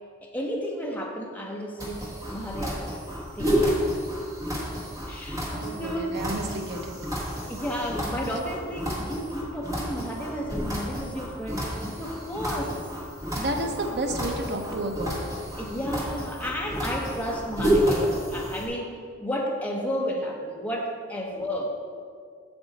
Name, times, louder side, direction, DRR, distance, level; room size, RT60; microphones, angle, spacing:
voice 1, 0.2-2.0 2.3-2.8 3.4-3.8 5.1-6.2 7.5-12.8 15.6-21.7, equal, 10° left, -1 dB, 0.9 m, -32 dB
sound 1, 1.8-18.7, equal, 15° right, 1.3 m, -30 dB
voice 2, 5.2-7.2 13.4-15.2, right 1 dB, 55° right, 3 dB, 0.7 m, -32 dB
8.0 x 6.9 x 4.0 m, 2.2 s
head